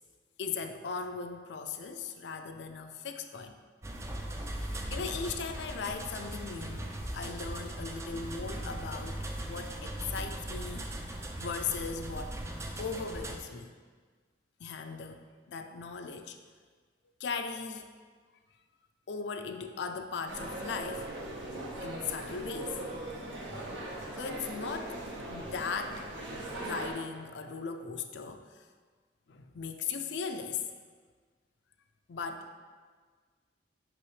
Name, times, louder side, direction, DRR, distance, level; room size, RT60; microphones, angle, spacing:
voice 1, 0.4-3.6 4.9-10.9 11.4-12.4 12.8-13.7 14.6-16.4 17.2-17.9 19.1-21.1 21.8-22.8 24.2-25.0 25.3-28.6 29.3-30.6 32.1-32.6, left 5 dB, 70° left, 7 dB, 0.4 m, -38 dB
sound 1, 3.8-13.4, right 1 dB, 15° right, 0.3 m, -39 dB
sound 2, 20.3-26.9, right 1 dB, 80° right, 1.1 m, -40 dB
5.9 x 5.5 x 3.2 m, 1.5 s
head